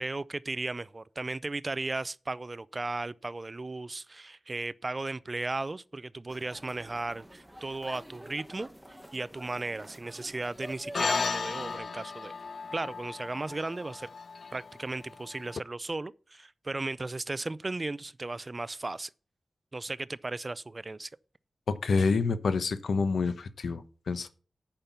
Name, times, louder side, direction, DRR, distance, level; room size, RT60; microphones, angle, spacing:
voice 1, 0.0-8.7 9.1-12.3 12.7-14.1 14.5-19.1 19.7-21.1, right 2 dB, 30° right, 0.4 m, -36 dB
sound 1, 6.3-11.8, equal, 5° right, 1.4 m, -47 dB
sound 2, 10.9-15.6, left 5 dB, 65° left, 0.4 m, -35 dB
voice 2, 21.7-24.3, left 4 dB, 85° left, 1.0 m, -28 dB
8.7 x 5.8 x 7.1 m
wide cardioid pair, 105°, 0 cm